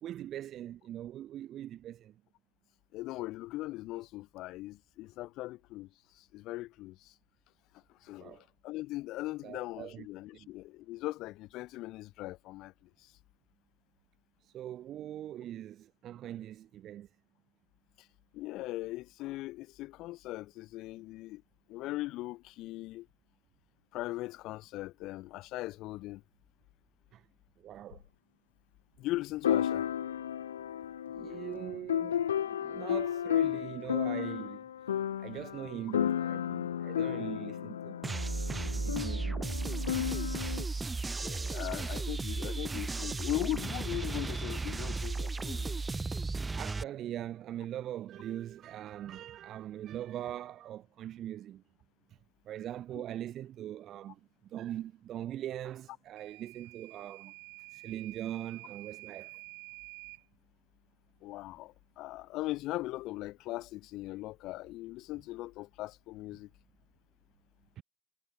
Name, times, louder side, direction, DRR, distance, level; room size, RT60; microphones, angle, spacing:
voice 1, 0.0-2.1 8.2-8.5 9.4-10.1 10.3-10.5 14.4-17.1 27.1-27.2 27.6-28.0 31.1-34.6 35.2-38.1 38.6-39.4 46.6-51.6 52.4-57.3 57.7-59.4 67.8-67.9, right 12 dB, 55° right, 3.4 m, -41 dB
voice 2, 2.9-5.9 6.2-7.1 8.0-12.7 18.3-21.4 21.7-23.1 23.9-26.2 29.0-29.9 40.7-40.8 41.2-45.9 61.2-66.5, left 18 dB, 60° left, 4.7 m, -39 dB
sound 1, 27.9-28.0 29.4-40.6, left 9 dB, 85° left, 0.3 m, -33 dB
sound 2, 38.0-46.8, right 3 dB, 20° right, 1.2 m, -35 dB
Microwave oven / Alarm, 56.2-60.3, right 40 dB or more, 70° right, 1.6 m, -49 dB
hypercardioid pair, 60°, 0 cm